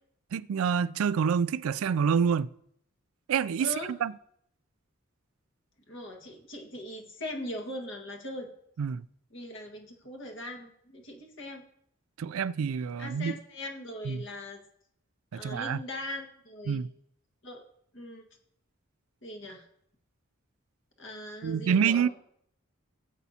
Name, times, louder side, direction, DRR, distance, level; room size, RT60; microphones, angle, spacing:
voice 1, 0.3-2.5 3.3-3.7 4.0-4.1 8.8-9.0 12.2-13.3 14.0-14.2 15.3-15.8 16.7-16.9 21.4-22.1, right 7 dB, 80° right, 0.4 m, -27 dB
voice 2, 3.6-3.9 5.9-8.5 9.3-11.6 13.0-14.6 15.3-16.8 17.4-17.6 17.9-18.2 19.2-19.6 21.0-22.1, left 1 dB, 60° left, 1.7 m, -40 dB
17.5 x 8.2 x 2.8 m
head